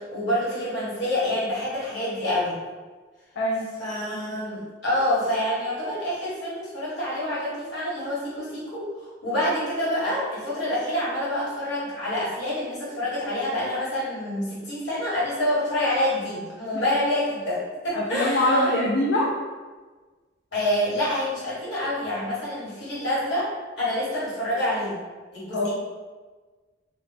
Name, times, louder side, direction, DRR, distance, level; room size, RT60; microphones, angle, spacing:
voice 1, 0.0-2.6 3.8-8.9 9.2-18.7 20.5-23.5 23.8-24.9 25.3-25.7, left 1 dB, 60° left, -9 dB, 1.4 m, -27 dB
voice 2, 3.4-3.7 17.9-19.3 25.5-25.7, left 1 dB, 80° left, -4 dB, 0.5 m, -23 dB
3.0 x 2.2 x 3.8 m, 1.4 s
head